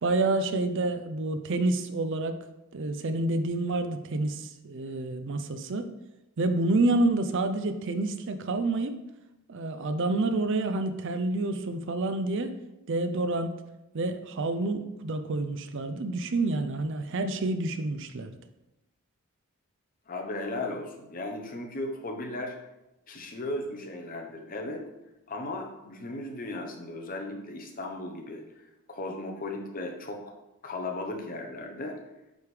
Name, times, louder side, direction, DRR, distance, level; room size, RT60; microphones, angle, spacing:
voice 1, 0.0-2.4 2.7-5.9 6.4-8.9 9.5-12.5 12.9-13.6 13.9-18.4, right 2 dB, 55° right, 9 dB, 0.5 m, -28 dB
voice 2, 20.1-22.6 23.1-24.8 25.3-30.3 30.6-32.0, left 2 dB, 40° left, 2 dB, 0.9 m, -36 dB
9.0 x 3.6 x 3.3 m, 0.94 s
head